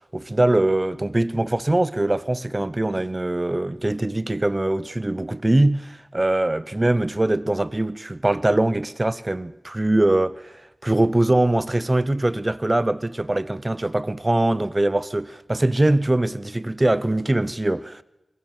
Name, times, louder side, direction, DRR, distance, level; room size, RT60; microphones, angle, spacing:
voice 1, 0.1-18.0, right 1 dB, 25° right, 0.7 m, -22 dB
22.5 x 16.5 x 7.6 m
wide cardioid pair, 75°, 0 cm